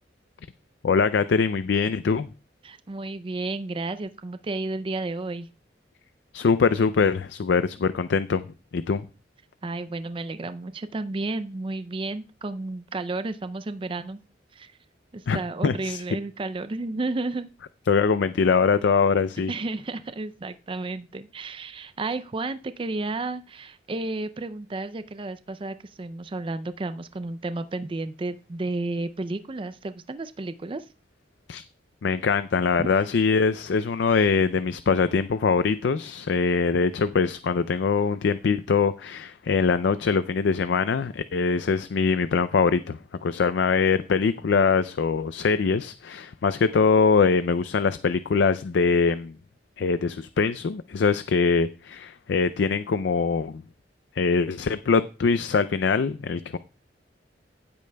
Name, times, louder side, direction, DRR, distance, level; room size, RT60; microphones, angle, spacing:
voice 1, 0.8-2.3 6.3-8.5 8.7-9.0 15.3-15.4 15.6-16.0 17.9-19.5 31.5-31.6 32.0-49.3 49.8-53.6 54.2-56.6, left 5 dB, 70° left, 0.4 m, -23 dB
voice 2, 2.6-5.5 9.6-14.2 14.5-14.7 15.1-17.5 19.5-30.8 32.8-32.9, right 2 dB, 30° right, 0.4 m, -32 dB
15.5 x 8.3 x 2.2 m
head